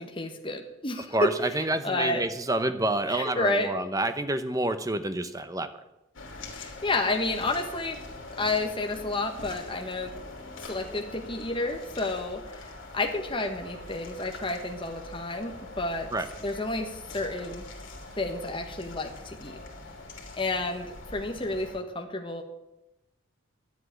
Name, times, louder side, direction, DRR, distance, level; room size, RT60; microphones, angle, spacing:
voice 1, 0.0-1.3 1.8-2.2 3.1-3.7 6.6-8.0 8.4-10.1 10.6-16.1 16.4-17.6 18.1-19.6 20.4-22.4, left 2 dB, 25° left, 3 dB, 1.3 m, -30 dB
voice 2, 1.1-5.7 16.1-16.3, right 2 dB, 15° right, 9 dB, 0.9 m, -28 dB
sound 1, 6.1-21.8, left 2 dB, 60° left, 2.9 m, -43 dB
11.5 x 8.0 x 10.0 m, 0.92 s
head